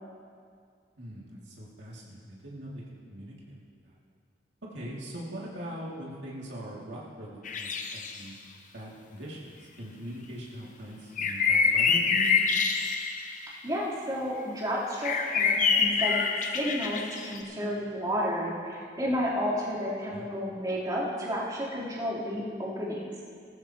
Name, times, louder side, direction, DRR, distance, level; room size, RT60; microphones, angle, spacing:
voice 1, 1.0-2.8 3.1-3.5 3.8-4.0 4.6-8.4 8.7-12.4 20.1-20.3, equal, 80° right, -5 dB, 2.6 m, -41 dB
sound 1, 7.4-8.2 11.2-13.4 15.0-17.4, left 5 dB, 45° left, 0.9 m, -26 dB
voice 2, 13.6-16.2 16.5-23.1, equal, 20° right, -9 dB, 3.7 m, -31 dB
19.5 x 14.5 x 3.0 m, 2.2 s
head